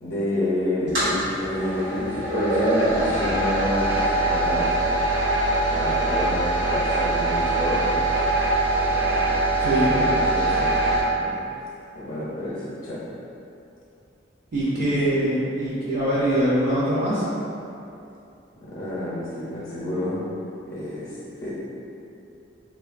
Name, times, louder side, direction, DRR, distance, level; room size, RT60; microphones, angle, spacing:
voice 1, 0.0-4.7 5.7-7.8 8.8-9.4 9.9-11.4 11.9-13.0 18.6-20.2 20.7-21.5, left 1 dB, 50° left, -7 dB, 0.5 m, -29 dB
sound 1, 0.9-11.0, right 2 dB, 85° right, 0.9 m, -23 dB
voice 2, 9.6-9.9 14.5-17.3, right 1 dB, 50° right, -9 dB, 0.5 m, -23 dB
3.1 x 2.1 x 2.4 m, 2.7 s
head